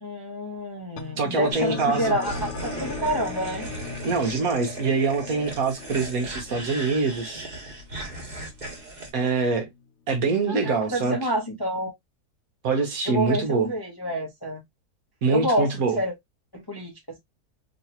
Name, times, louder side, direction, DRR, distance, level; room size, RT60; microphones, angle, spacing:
voice 1, 0.0-3.7 10.5-11.9 13.1-14.6 15.3-16.1 16.5-17.2, equal, 20° left, 0.6 m, -28 dB
sound 1, 1.0-9.8, left 7 dB, 80° left, 0.6 m, -40 dB
voice 2, 1.2-2.1 4.0-7.4 9.1-9.7 10.1-11.2 12.6-13.7 15.2-16.0, right 4 dB, 60° right, 1.2 m, -24 dB
sound 2, 1.5-9.1, right 2 dB, 30° right, 1.2 m, -37 dB
3.2 x 2.9 x 2.8 m
omnidirectional pair, 1.8 m